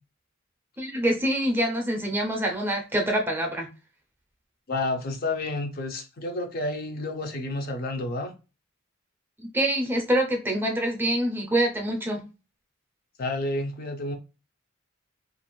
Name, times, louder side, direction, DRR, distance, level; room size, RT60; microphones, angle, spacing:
voice 1, 0.8-3.7 9.4-12.2, right 1 dB, 10° right, 0.5 m, -25 dB
voice 2, 4.7-8.3 13.2-14.2, left 2 dB, 45° left, 0.5 m, -30 dB
2.4 x 2.4 x 3.0 m
head